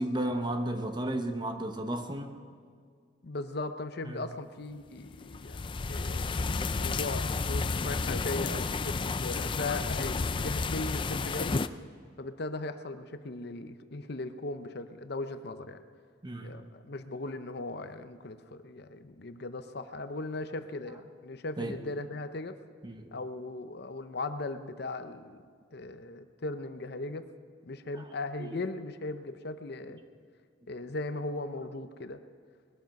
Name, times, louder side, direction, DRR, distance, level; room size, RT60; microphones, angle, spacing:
voice 1, 0.0-2.4 4.0-4.3 16.2-16.6 21.6-21.8 22.8-23.1 27.9-28.0 28.4-28.6, right 1 dB, 25° right, 6 dB, 1.0 m, -34 dB
voice 2, 3.2-11.5 12.2-15.8 16.4-22.6 23.1-25.4 25.7-27.3 27.6-30.0 30.7-32.2, left 2 dB, 55° left, 10 dB, 0.7 m, -38 dB
sound 1, 5.1-11.7, left 4 dB, 25° left, 0.4 m, -31 dB
20.5 x 12.5 x 5.3 m, 2.1 s
head